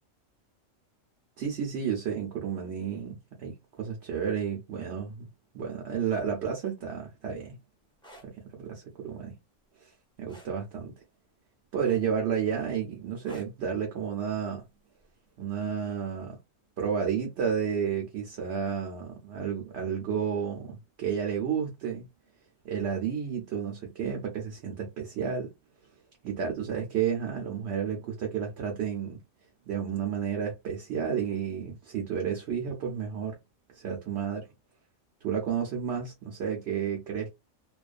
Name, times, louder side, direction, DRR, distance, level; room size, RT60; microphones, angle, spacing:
voice 1, 1.4-5.3 5.5-7.6 8.2-9.3 9.8-9.9 10.2-10.9 11.7-14.6 15.4-16.4 16.8-22.1 22.6-25.5 26.2-29.2 29.7-33.4 33.7-34.5 35.2-37.3, right 7 dB, 65° right, 0.9 m, -31 dB
sound 1, 7.9-8.3 10.3-10.6 11.8-12.3 13.2-13.6 15.0-15.2, right 1 dB, 5° left, 0.6 m, -51 dB
2.4 x 2.2 x 2.4 m
omnidirectional pair, 1.3 m